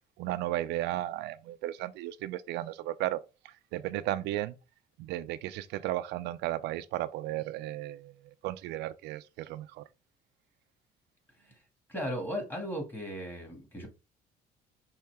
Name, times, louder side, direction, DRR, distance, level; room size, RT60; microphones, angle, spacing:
voice 1, 0.2-4.6 5.0-9.8, right 14 dB, 85° right, 0.4 m, -35 dB
voice 2, 11.9-13.9, equal, 10° left, 2.0 m, -36 dB
5.5 x 2.8 x 3.4 m
cardioid pair, 110°, 17 cm